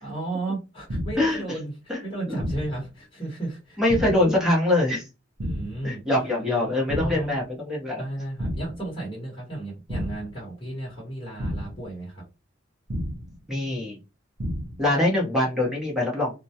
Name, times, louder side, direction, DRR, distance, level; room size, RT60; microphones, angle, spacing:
voice 1, 0.0-3.8 5.4-6.0 7.0-7.3 8.0-12.2, right 2 dB, 25° left, -5 dB, 1.1 m, -34 dB
sound 1, 0.9-1.4 2.4-2.9 3.9-4.4 5.4-5.9 6.9-7.4 8.4-8.9 9.9-10.4 11.4-11.9 12.9-13.4 14.4-14.9, equal, 65° right, 0.6 m, -31 dB
voice 2, 1.2-1.6 1.9-2.0 2.3-2.4 3.8-5.0 5.8-8.0 13.5-14.0 14.8-16.4, left 1 dB, 5° right, -4 dB, 0.9 m, -23 dB
2.2 x 2.2 x 2.7 m, 0.28 s
head